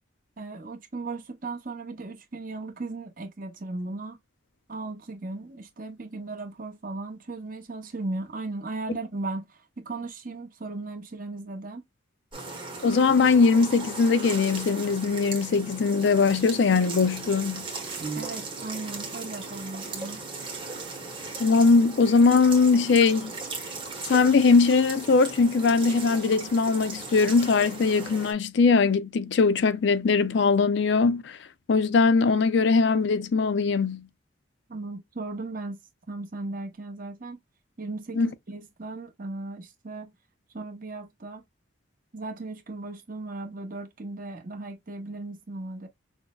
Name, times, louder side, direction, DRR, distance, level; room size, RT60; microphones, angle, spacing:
voice 1, 0.4-4.2 4.7-11.8 18.0-20.3 34.7-35.8 36.1-37.4 37.8-40.1 40.5-41.4 42.1-45.9, right 3 dB, 45° right, 0.8 m, -36 dB
sound 1, 12.3-28.3, right 3 dB, 25° right, 1.2 m, -37 dB
voice 2, 12.8-17.7 21.4-23.3 24.1-31.4 31.7-34.1 38.2-38.3, left 4 dB, 60° left, 0.4 m, -21 dB
6.1 x 2.1 x 2.3 m
head